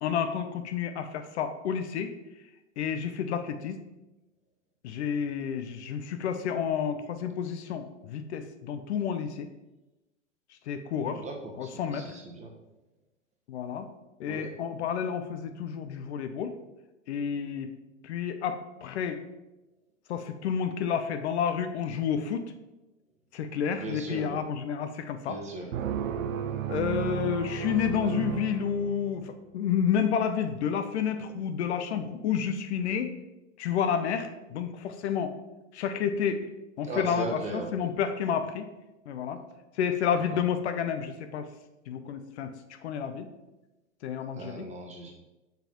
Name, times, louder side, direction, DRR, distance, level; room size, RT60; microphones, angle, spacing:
voice 1, 0.0-2.1 2.8-3.8 4.8-9.5 10.7-11.2 11.6-12.2 13.5-13.9 14.2-16.6 17.1-17.7 18.0-19.2 20.1-22.5 23.3-25.4 26.7-33.2 33.6-35.3 35.7-36.5 36.8-38.6 39.1-39.4 39.8-41.5 41.9-43.3 44.0-44.7, left 7 dB, 55° left, 8 dB, 0.7 m, -30 dB
voice 2, 11.1-12.5 14.3-14.5 23.8-24.4 25.3-25.7 36.8-37.7 40.3-40.4 44.3-45.1, right 2 dB, 15° right, 0 dB, 1.1 m, -37 dB
sound 1, 25.7-29.3, right 9 dB, 80° right, 0.6 m, -33 dB
6.8 x 5.7 x 2.9 m, 1.0 s
hypercardioid pair, 110°, 40 cm